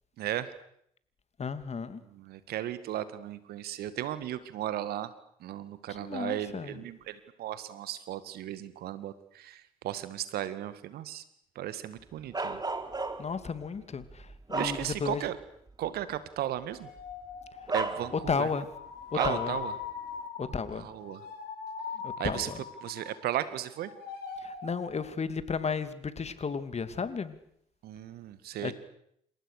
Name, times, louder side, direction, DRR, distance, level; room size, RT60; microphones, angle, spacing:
voice 1, 0.2-0.5 2.1-5.1 5.4-11.2 11.6-12.6 14.5-15.4 15.8-16.9 17.7-18.5 19.1-19.7 20.8-21.2 22.2-22.5 22.8-23.9 27.8-28.7, right 12 dB, 65° right, 14 dB, 1.9 m, -35 dB
voice 2, 1.4-2.0 6.0-6.8 13.2-14.0 14.5-15.2 18.1-18.7 19.2-19.6 20.4-20.9 22.0-22.6 24.4-27.3 28.6-28.7, left 5 dB, 40° left, 12 dB, 2.8 m, -33 dB
Bark, 12.3-13.4 14.0-15.3 15.7-15.9 17.0-17.1 17.7-18.5 19.1-19.6, right 3 dB, 25° right, 3.4 m, -34 dB
sound 1, 16.7-23.5 23.7-24.9, left 6 dB, 65° left, 6.4 m, -41 dB
28.0 x 27.0 x 6.7 m, 0.71 s
hypercardioid pair, 45°, 17 cm